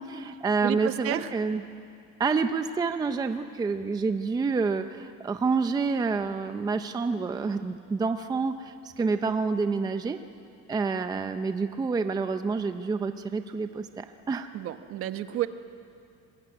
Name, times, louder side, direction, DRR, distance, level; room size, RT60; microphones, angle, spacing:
voice 1, 0.0-1.6 2.2-10.2 10.7-14.5, right 4 dB, 15° right, 8 dB, 0.6 m, -28 dB
voice 2, 0.6-1.3 14.5-15.5, right 12 dB, 50° right, 9 dB, 1.2 m, -31 dB
26.0 x 21.5 x 9.8 m, 2.5 s
cardioid pair, 170°, 29 cm